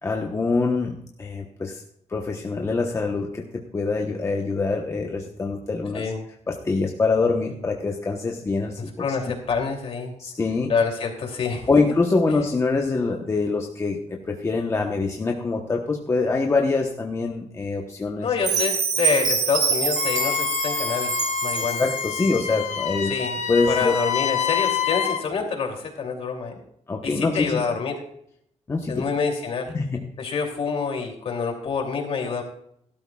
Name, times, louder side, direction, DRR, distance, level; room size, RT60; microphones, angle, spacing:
voice 1, 0.0-1.8 2.1-6.1 6.5-9.2 10.2-10.7 11.7-18.3 21.6-23.1 23.5-23.9 26.9-27.6 28.7-29.0 29.7-30.1, left 3 dB, 25° left, 1 dB, 1.0 m, -24 dB
voice 2, 9.0-10.1 10.7-11.7 18.2-21.8 23.1-23.4 23.7-26.5 27.0-28.0 28.9-29.7 30.2-32.4, left 5 dB, 55° left, 2 dB, 2.9 m, -27 dB
Chime, 18.4-22.5, right 5 dB, 75° right, 3.6 m, -26 dB
Wind instrument woodwind instrument, 20.0-25.2, left 8 dB, 70° left, 1.1 m, -27 dB
17.5 x 12.5 x 2.4 m, 0.69 s
wide cardioid pair, 155°, 12 cm